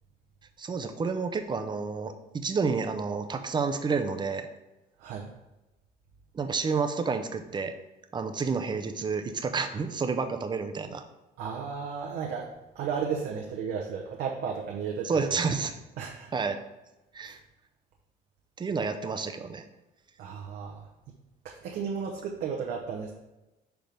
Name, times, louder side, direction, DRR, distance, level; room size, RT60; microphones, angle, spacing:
voice 1, 0.6-4.5 6.3-7.7 8.1-11.1 15.0-15.8 16.3-16.6 17.1-17.4 18.6-19.6, right 5 dB, 25° right, 7 dB, 0.6 m, -30 dB
voice 2, 11.4-12.5 12.7-15.2 16.0-16.3 17.2-17.3 20.2-20.9 21.4-23.1, right 6 dB, 75° right, 0 dB, 0.8 m, -34 dB
6.0 x 3.5 x 5.1 m, 1.0 s
cardioid pair, 110°, 17 cm